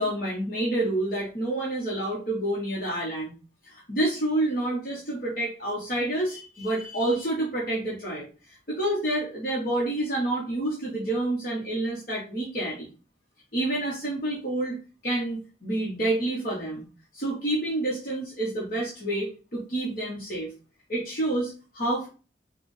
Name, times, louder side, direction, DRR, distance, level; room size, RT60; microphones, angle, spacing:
voice 1, 0.0-3.3 3.6-12.9 13.5-14.8 15.0-16.8 17.1-20.5 20.9-22.1, right 1 dB, 50° left, -4 dB, 1.2 m, -28 dB
4.9 x 2.4 x 3.3 m, 0.34 s
head